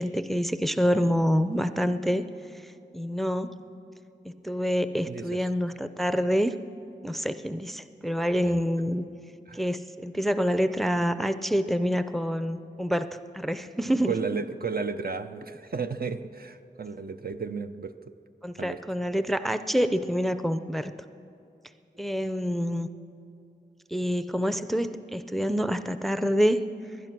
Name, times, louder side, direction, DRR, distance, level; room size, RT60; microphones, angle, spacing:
voice 1, 0.0-2.2 2.9-3.6 4.2-6.6 7.0-9.0 9.5-13.1 13.3-14.1 18.4-20.9 22.0-22.9 23.9-26.7, equal, ahead, 11 dB, 0.6 m, -27 dB
voice 2, 5.1-5.5 8.5-8.6 9.5-9.6 14.1-17.9 18.6-18.8, right 5 dB, 55° right, 8 dB, 0.6 m, -33 dB
20.0 x 11.0 x 6.1 m, 2.6 s
wide cardioid pair, 55°, 18 cm